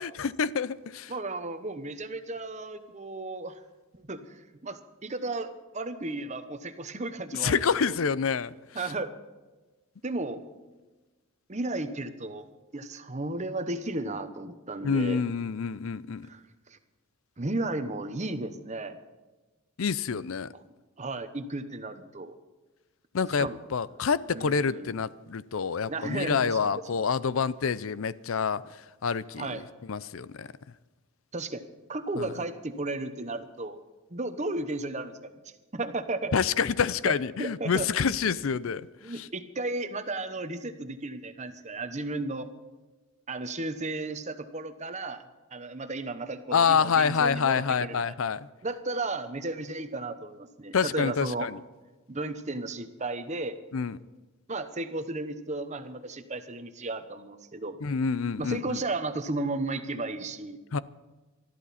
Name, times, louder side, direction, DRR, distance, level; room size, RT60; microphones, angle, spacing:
voice 1, 0.0-1.1 7.3-8.5 14.8-16.3 19.8-20.5 23.1-28.6 29.0-30.5 32.2-32.3 36.3-39.3 46.5-48.5 50.7-51.6 53.7-54.0 57.8-58.8 60.7-60.8, left 6 dB, 70° left, 18 dB, 0.5 m, -27 dB
voice 2, 1.1-3.6 4.0-7.5 7.8-7.9 8.7-9.1 10.0-10.4 11.5-12.5 12.7-15.2 16.2-16.8 17.4-19.0 21.0-22.3 23.4-23.6 24.3-24.9 25.9-26.7 29.4-29.6 31.3-31.6 31.9-33.8 34.1-35.3 35.7-36.3 37.0-37.1 37.4-38.2 39.0-42.5 43.3-45.2 45.5-48.2 48.6-51.5 52.1-53.6 54.5-57.8 58.4-60.6, right 2 dB, 35° right, 10 dB, 1.0 m, -34 dB
20.5 x 13.5 x 4.2 m, 1.2 s
head